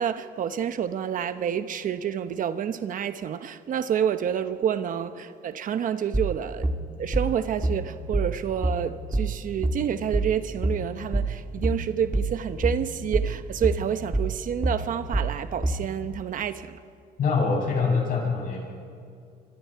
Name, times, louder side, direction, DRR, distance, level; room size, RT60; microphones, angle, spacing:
voice 1, 0.0-6.7 7.0-16.8, right 8 dB, 55° right, 1.0 m, -28 dB
sound 1, 6.1-15.9, right 2 dB, 10° right, 2.0 m, -27 dB
voice 2, 17.2-18.9, left 4 dB, 55° left, 7.9 m, -25 dB
27.0 x 24.5 x 4.8 m
cardioid pair, 110°, 17 cm